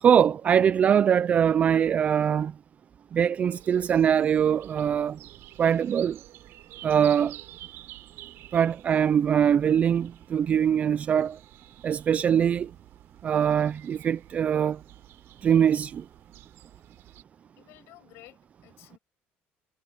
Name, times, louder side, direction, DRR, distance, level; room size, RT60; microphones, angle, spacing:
voice 1, 0.0-2.5 3.1-5.2 5.6-6.2 6.8-7.3 8.5-11.4 11.8-12.7 13.2-14.8 15.4-16.0, right 8 dB, 35° right, 0.3 m, -22 dB
sound 1, 3.5-17.2, right 16 dB, 70° right, 5.3 m, -50 dB
voice 2, 17.6-19.0, left 18 dB, 80° left, 6.0 m, -53 dB
cardioid pair, 145°, 4 cm